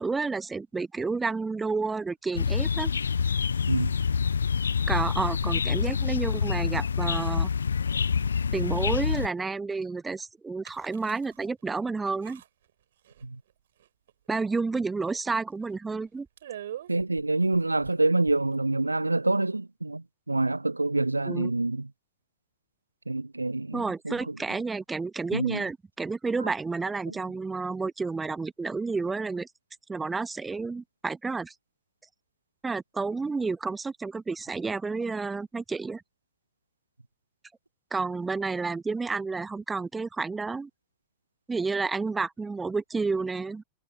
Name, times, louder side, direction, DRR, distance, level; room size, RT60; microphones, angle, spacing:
voice 1, 0.0-2.9 4.9-7.5 8.5-12.4 14.3-16.3 21.3-21.5 23.7-29.5 29.9-31.5 32.6-36.0 37.9-40.7 41.5-43.6, right 4 dB, 10° right, 1.1 m, -30 dB
sound 1, 2.3-9.3, left 6 dB, 70° left, 0.5 m, -26 dB
sound 2, 10.6-11.4 11.8-11.9 12.2-12.7 13.0-13.5 13.8-14.4 14.7-14.8 15.1-15.2 15.7-15.9 16.4-18.7, right 11 dB, 60° right, 7.6 m, -44 dB
voice 2, 16.9-21.9 23.1-24.4 25.3-25.6 26.4-26.5, right 2 dB, 85° right, 1.2 m, -27 dB
figure-of-eight pair, 90°, 0 cm